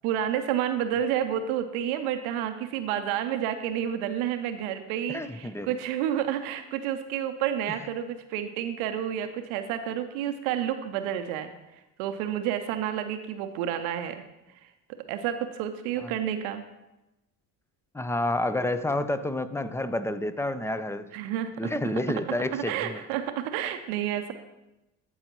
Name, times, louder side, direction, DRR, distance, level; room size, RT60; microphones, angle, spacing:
voice 1, 0.0-11.5 12.0-14.2 14.9-16.6 21.1-21.7 22.1-22.2 22.5-24.3, right 10 dB, 80° right, 8 dB, 0.7 m, -30 dB
voice 2, 5.1-5.7 7.7-7.8 16.0-16.1 17.9-21.1 21.6-23.0, left 1 dB, 5° left, 12 dB, 0.5 m, -29 dB
14.0 x 4.8 x 3.0 m, 0.97 s
hypercardioid pair, 55°, 49 cm